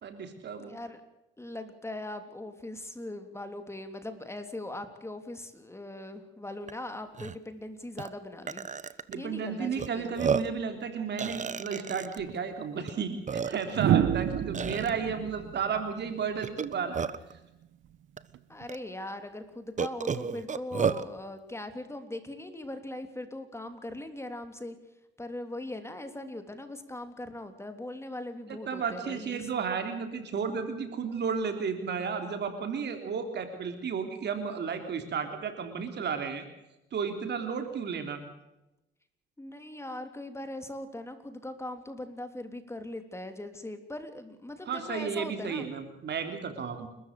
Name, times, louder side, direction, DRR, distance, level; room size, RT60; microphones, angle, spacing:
voice 1, 0.0-0.8 9.1-17.1 28.5-36.5 36.9-38.2 44.7-46.9, right 6 dB, 60° right, 6 dB, 3.5 m, -33 dB
voice 2, 0.6-1.0 1.4-8.7 9.1-10.1 18.5-24.8 25.2-29.5 39.4-45.6, left 1 dB, 15° left, 8 dB, 3.3 m, -40 dB
Burping eructation, 6.7-6.8 7.1-7.4 8.0-8.1 8.5-9.2 9.8-9.9 10.2-10.6 11.2-12.2 12.9-13.0 13.3-13.8 14.5-14.9 16.4-17.3 18.2-18.3 18.7-18.8 19.8-21.1, right 6 dB, 40° right, 1.3 m, -31 dB
sound 1, 12.2-12.4 13.7-16.8 18.3-18.6, right 10 dB, 75° right, 1.3 m, -29 dB
29.5 x 14.0 x 6.8 m, 0.92 s
cardioid pair, 90°, 20 cm